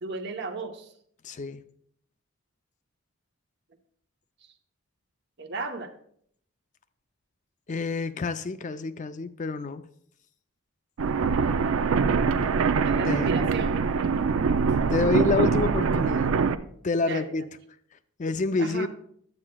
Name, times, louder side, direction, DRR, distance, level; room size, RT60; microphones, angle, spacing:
voice 1, 0.0-0.9 5.4-5.9 12.8-13.8 17.0-17.3 18.6-18.9, right 3 dB, 50° right, 0.9 m, -34 dB
voice 2, 1.2-1.6 7.7-9.8 13.1-13.3 14.9-16.3 16.8-17.5 18.2-18.9, left 3 dB, 35° left, 0.4 m, -27 dB
sound 1, 11.0-16.6, right 5 dB, 70° right, 0.4 m, -23 dB
12.0 x 8.5 x 2.3 m
head